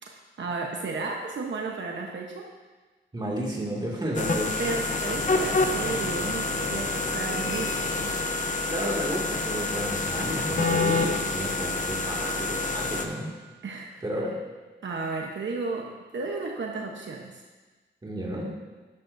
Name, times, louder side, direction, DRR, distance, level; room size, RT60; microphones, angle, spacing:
voice 1, 0.0-2.5 4.6-8.1 13.6-14.0 14.8-17.4, right 3 dB, 70° right, 0 dB, 1.0 m, -33 dB
voice 2, 3.1-4.6 5.3-5.4 8.7-13.3 14.0-14.3 18.0-18.5, right 1 dB, 20° right, -4 dB, 2.3 m, -32 dB
sound 1, 4.1-13.0, left 3 dB, 40° left, 0.8 m, -27 dB
12.5 x 11.0 x 2.7 m, 1.3 s
wide cardioid pair, 140°, 20 cm